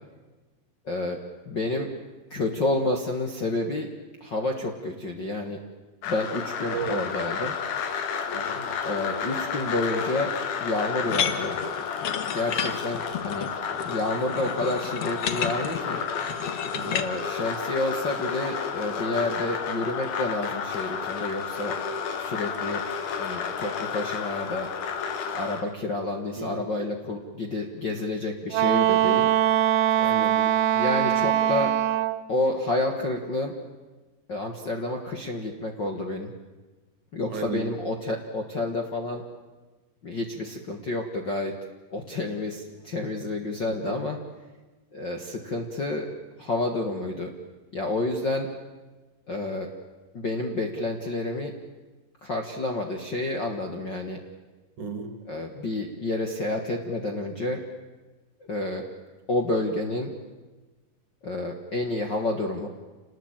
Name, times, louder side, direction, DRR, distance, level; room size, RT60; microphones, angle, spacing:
voice 1, 0.9-1.2 1.5-1.9 2.3-3.9 4.2-5.6 6.1-7.5 8.8-10.3 10.6-11.6 12.2-13.5 13.8-16.0 16.9-21.8 22.2-22.8 23.2-24.7 25.3-29.3 30.7-31.7 32.3-33.5 34.3-36.3 37.1-39.2 40.0-41.6 41.9-44.2 44.9-46.1 46.4-47.3 47.7-48.5 49.3-49.7 50.1-51.5 52.2-54.2 55.3-57.6 58.5-58.8 59.3-60.1 61.2-62.7, left 2 dB, 40° left, 3 dB, 1.7 m, -29 dB
sound 1, 6.0-25.6, left 6 dB, 90° left, 3.9 m, -31 dB
sound 2, 11.1-17.1, left 8 dB, 60° left, 1.7 m, -32 dB
voice 2, 16.7-17.0 26.4-26.6 30.0-30.5 37.3-37.7 43.7-44.0 54.8-55.2, right 4 dB, 60° right, 7 dB, 3.7 m, -34 dB
Wind instrument woodwind instrument, 28.5-32.2, right 11 dB, 85° right, 2.8 m, -22 dB
27.5 x 20.0 x 8.9 m, 1.2 s
omnidirectional pair, 4.2 m